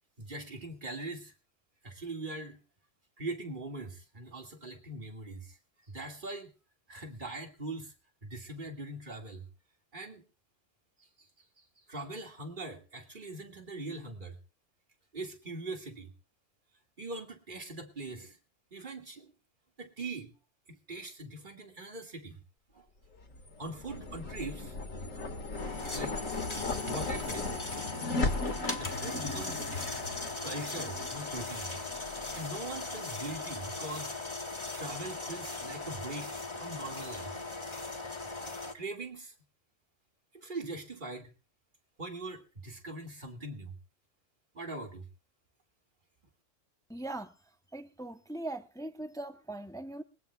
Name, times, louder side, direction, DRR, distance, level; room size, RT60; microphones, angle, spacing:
voice 1, 0.2-1.3 1.8-2.6 3.2-5.6 5.9-6.5 6.9-7.9 8.2-9.5 9.9-10.2 11.0-11.3 11.6-14.4 15.1-16.1 17.0-18.4 18.7-19.3 19.8-20.3 20.7-22.4 22.7-22.9 23.6-24.8 25.3-25.4 25.9-26.2 26.9-27.6 28.8-29.7 30.4-31.8 32.3-34.2 34.5-37.4 38.7-39.3 40.3-41.3 42.0-43.8 44.5-45.1, right 2 dB, 40° right, 2.4 m, -42 dB
sound 1, 23.2-33.7, left 3 dB, 85° left, 2.3 m, -37 dB
sound 2, 25.6-38.7, left 3 dB, 20° left, 1.6 m, -39 dB
voice 2, 46.9-47.3 47.7-50.0, right 2 dB, 5° left, 0.7 m, -40 dB
22.0 x 16.5 x 2.4 m
omnidirectional pair, 1.3 m